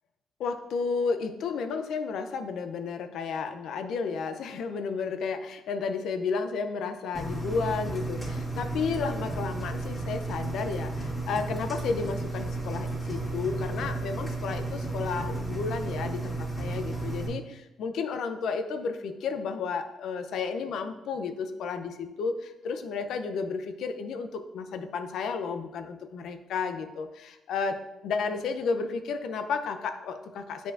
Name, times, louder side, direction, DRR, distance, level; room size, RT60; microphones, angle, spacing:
voice 1, 0.4-27.8 28.0-30.7, left 5 dB, 75° left, 8 dB, 0.5 m, -32 dB
Engine, 7.1-17.3, right 2 dB, 20° left, 2.2 m, -33 dB
7.8 x 5.0 x 2.5 m, 0.94 s
cardioid pair, 90°, 0 cm